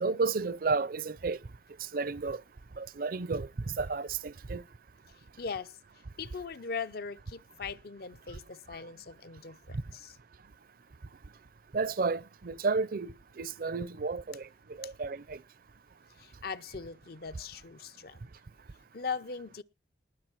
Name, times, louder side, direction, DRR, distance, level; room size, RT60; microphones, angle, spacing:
voice 1, 0.0-1.4 1.9-2.4 2.8-3.5 3.7-4.6 11.7-14.5 14.8-15.4, right 4 dB, 50° right, 0.5 m, -32 dB
voice 2, 5.4-5.8 6.2-10.2 14.8-14.9 16.2-18.2 18.9-19.6, left 5 dB, 55° left, 0.6 m, -40 dB
19.0 x 6.4 x 4.5 m
head